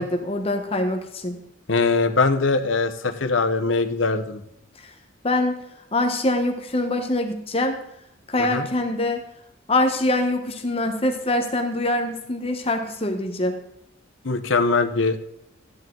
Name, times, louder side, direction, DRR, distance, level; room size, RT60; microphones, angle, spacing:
voice 1, 0.0-1.4 5.2-5.6 5.9-7.7 8.3-9.2 9.7-13.6, left 1 dB, 30° left, 5 dB, 1.1 m, -24 dB
voice 2, 1.7-4.4 8.4-8.7 14.2-15.2, left 3 dB, 80° left, 7 dB, 1.0 m, -21 dB
14.0 x 10.0 x 3.9 m, 0.80 s
head